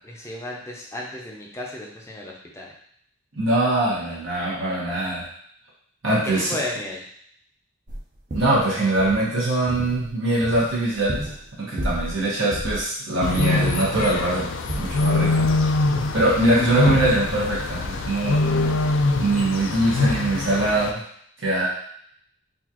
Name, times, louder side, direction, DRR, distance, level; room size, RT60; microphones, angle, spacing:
voice 1, 0.0-2.7 6.4-7.0, left 1 dB, 15° left, -2 dB, 0.6 m, -34 dB
voice 2, 3.3-5.2 6.0-6.5 8.3-11.3 11.6-14.5 14.8-15.5 16.1-18.4 19.2-21.0 21.4-21.7, right 1 dB, 70° right, -7 dB, 1.2 m, -22 dB
sound 1, 7.9-8.0 8.3-8.6 9.0-9.2 9.7-10.1 10.4-11.5 11.8-12.2 12.5-12.8 13.2-14.3 14.7-15.9 16.2-16.5 16.9-17.2, equal, 40° right, 0.6 m, -31 dB
sound 2, 13.2-20.9, left 2 dB, 70° left, 0.4 m, -23 dB
4.1 x 2.5 x 2.9 m, 0.66 s
head